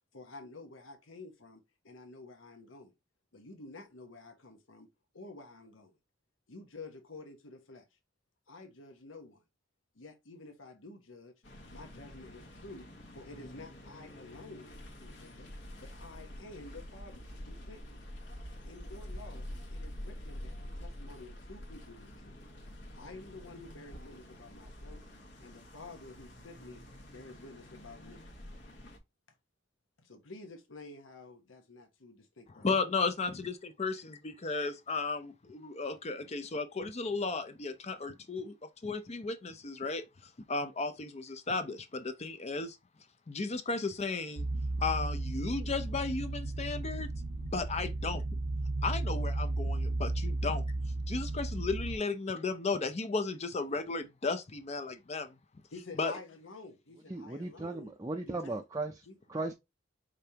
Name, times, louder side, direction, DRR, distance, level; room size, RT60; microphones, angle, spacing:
voice 1, 0.1-2.9 3.3-4.9 5.1-5.9 6.5-8.0 8.5-9.4 9.9-11.3 11.7-12.9 13.1-15.5 15.8-18.0 18.6-19.4 19.7-22.4 22.9-25.0 25.4-28.2 30.0-32.7 34.6-34.7 55.7-57.9 58.3-58.6 59.1-59.2, left 2 dB, 85° left, 1.1 m, -50 dB
sound 1, 11.4-29.0, left 1 dB, 65° left, 1.3 m, -47 dB
voice 2, 32.6-38.6 38.8-40.0 40.5-42.8 43.3-44.5 44.8-47.1 47.4-48.2 48.8-50.6 51.1-55.3 56.0-56.1, left 4 dB, 35° left, 0.5 m, -34 dB
sound 2, 44.4-52.0, right 2 dB, 90° right, 1.0 m, -34 dB
voice 3, 57.1-58.9 59.3-59.5, right 2 dB, 20° right, 0.5 m, -36 dB
5.2 x 3.3 x 2.8 m
head